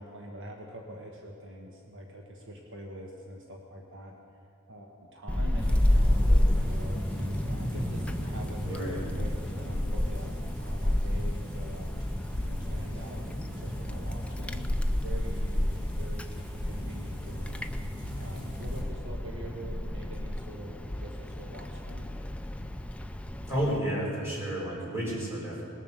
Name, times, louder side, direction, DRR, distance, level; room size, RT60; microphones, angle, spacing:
voice 1, 0.0-4.2 4.7-7.0 7.5-12.0 12.3-13.3 13.6-14.7 15.0-17.7 18.1-22.1, equal, 60° right, 0 dB, 1.2 m, -44 dB
Wind, 5.3-23.8, left 1 dB, 5° left, 0.4 m, -30 dB
sound 1, 5.6-18.8, equal, 35° right, 3.1 m, -40 dB
voice 2, 8.6-9.1 23.5-25.6, equal, 10° right, -6 dB, 3.9 m, -31 dB
19.5 x 7.2 x 6.7 m, 2.5 s
head